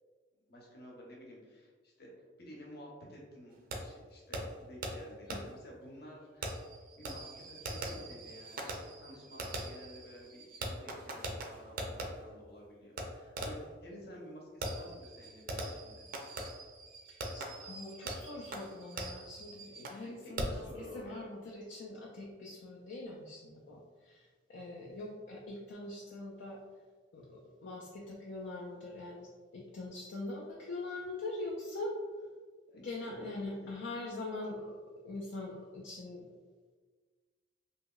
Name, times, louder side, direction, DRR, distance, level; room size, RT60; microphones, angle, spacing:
voice 1, 0.5-6.6 7.0-16.0 20.0-21.3 32.7-33.7, equal, 60° left, -3 dB, 0.8 m, -52 dB
Fireworks, 3.7-3.8 4.3-4.4 4.8-4.9 5.3-5.4 6.4-12.1 13.0-13.1 13.4-13.7 14.6-20.0 20.4-20.7, right 1 dB, 50° right, 0.4 m, -41 dB
voice 2, 17.1-26.6 27.1-32.0 32.7-34.8 35.0-36.2, left 2 dB, 75° left, -3 dB, 0.4 m, -43 dB
2.8 x 2.8 x 2.3 m, 1.4 s
head